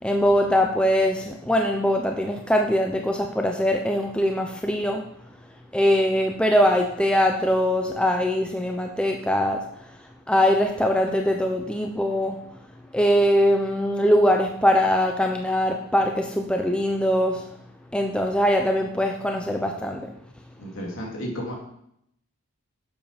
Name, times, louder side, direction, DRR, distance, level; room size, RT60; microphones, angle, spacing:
voice 1, 0.0-5.0 5.7-12.4 12.9-17.5 17.9-20.1, equal, 5° left, 2 dB, 0.6 m, -22 dB
voice 2, 20.6-21.5, equal, 60° left, -1 dB, 3.0 m, -32 dB
10.5 x 7.4 x 5.1 m, 0.74 s
head